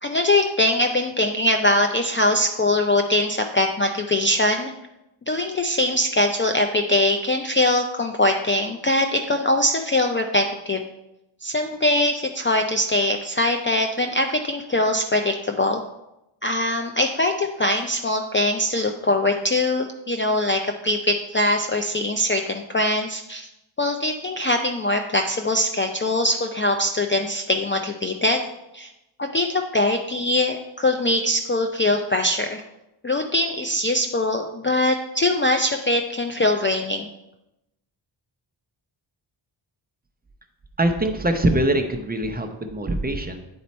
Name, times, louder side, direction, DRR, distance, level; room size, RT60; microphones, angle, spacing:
voice 1, 0.0-4.7 5.3-10.8 11.4-15.8 16.4-23.5 23.8-28.4 28.7-28.9 29.2-32.6 33.0-37.1, left 1 dB, 25° left, 4 dB, 0.4 m, -22 dB
voice 2, 40.8-43.4, right 1 dB, 20° right, 5 dB, 0.7 m, -23 dB
9.4 x 4.2 x 4.2 m, 0.89 s
wide cardioid pair, 125°, 47 cm